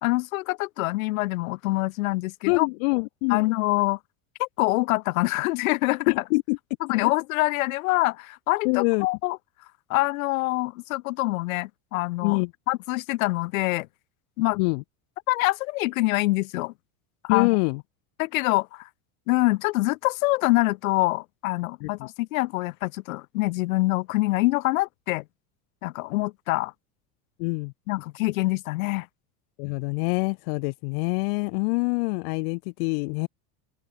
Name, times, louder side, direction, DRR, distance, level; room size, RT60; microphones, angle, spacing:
voice 1, 0.0-2.7 3.3-4.0 4.4-6.1 6.8-9.4 9.9-13.9 14.4-14.6 15.3-16.7 17.2-17.5 18.2-18.9 19.3-25.2 25.8-26.7 27.9-29.1, left 21 dB, 70° left, 2.5 m, -25 dB
voice 2, 2.5-3.5 6.1-6.6 7.0-7.1 8.6-9.1 12.2-12.5 14.5-14.8 17.3-17.8 21.8-22.1 27.4-27.7 29.6-33.3, left 31 dB, 45° left, 0.7 m, -25 dB
open air
supercardioid pair, 175°, 43 cm